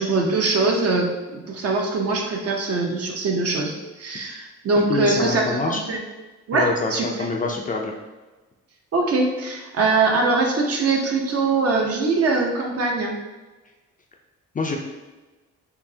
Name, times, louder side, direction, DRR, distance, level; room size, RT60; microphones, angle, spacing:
voice 1, 0.0-6.0 6.5-7.3 8.9-13.2, right 3 dB, 50° right, 0 dB, 0.8 m, -22 dB
voice 2, 4.8-5.8 6.5-7.9 14.5-14.8, left 3 dB, 25° left, 1 dB, 0.5 m, -25 dB
5.6 x 2.0 x 2.7 m, 1.2 s
cardioid pair, 90°, 30 cm